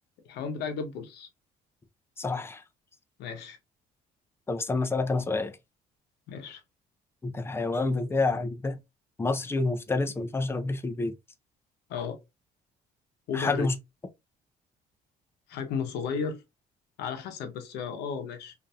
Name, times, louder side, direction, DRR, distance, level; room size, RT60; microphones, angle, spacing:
voice 1, 0.2-1.3 3.2-3.6 6.3-6.6 11.9-12.2 13.3-13.7 15.5-16.4 17.0-18.5, left 6 dB, 80° left, 0.7 m, -34 dB
voice 2, 2.2-2.6 4.5-5.5 7.2-8.8 9.2-11.1 13.3-13.7, left 3 dB, 15° left, 0.4 m, -28 dB
2.7 x 2.5 x 2.2 m
cardioid pair, 110°, 17 cm